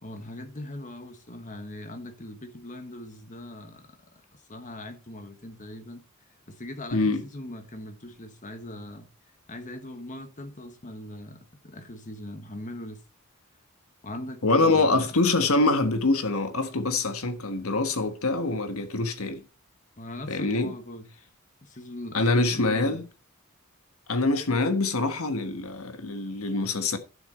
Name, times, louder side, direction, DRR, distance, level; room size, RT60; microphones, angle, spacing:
voice 1, 0.0-6.0 6.5-9.1 9.5-13.0 14.0-15.2 20.0-21.1 21.6-23.0, left 1 dB, 35° left, 1.4 m, -40 dB
voice 2, 6.9-7.2 14.4-19.4 20.3-20.7 22.1-23.0 24.1-27.0, left 3 dB, 75° left, 1.4 m, -25 dB
11.5 x 6.6 x 4.4 m
head